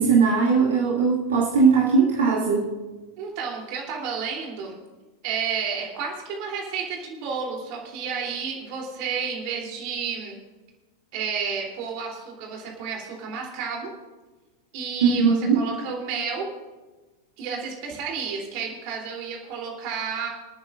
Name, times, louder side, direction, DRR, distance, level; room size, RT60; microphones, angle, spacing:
voice 1, 0.0-2.7 15.0-15.6, right 5 dB, 65° right, -5 dB, 2.2 m, -19 dB
voice 2, 3.2-4.7 5.2-10.4 11.1-13.9 14.7-16.5 17.4-20.3, right 6 dB, 45° right, 0 dB, 3.3 m, -31 dB
27.5 x 9.2 x 2.5 m, 1.2 s
figure-of-eight pair, 90°, 0 cm